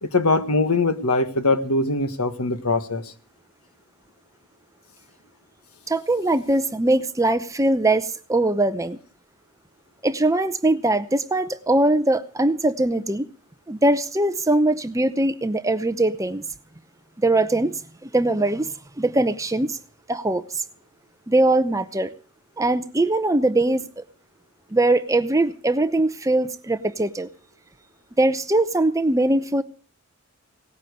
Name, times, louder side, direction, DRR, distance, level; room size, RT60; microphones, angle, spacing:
voice 1, 0.0-3.0, left 2 dB, 80° left, 10 dB, 1.5 m, -22 dB
voice 2, 5.9-9.0 10.0-13.3 13.7-16.4 17.2-19.8 20.1-20.4 21.3-22.1 22.6-24.0 24.7-27.3 28.2-29.6, right 2 dB, 15° right, 11 dB, 0.7 m, -21 dB
18.0 x 9.7 x 6.5 m, 0.40 s
head